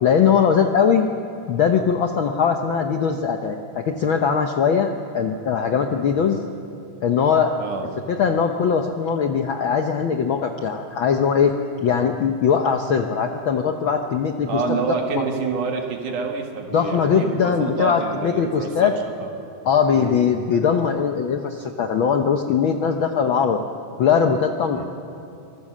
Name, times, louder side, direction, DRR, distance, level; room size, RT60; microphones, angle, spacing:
voice 1, 0.0-1.1 1.5-6.4 7.0-7.5 8.1-11.5 11.8-14.8 15.1-15.2 16.7-18.9 19.6-23.6 24.0-24.8, left 7 dB, 80° left, 5 dB, 1.1 m, -20 dB
voice 2, 7.6-7.9 14.5-19.3 19.9-20.2 24.7-24.8, right 5 dB, 90° right, 3 dB, 3.3 m, -27 dB
25.5 x 19.0 x 7.4 m, 2.6 s
omnidirectional pair, 3.5 m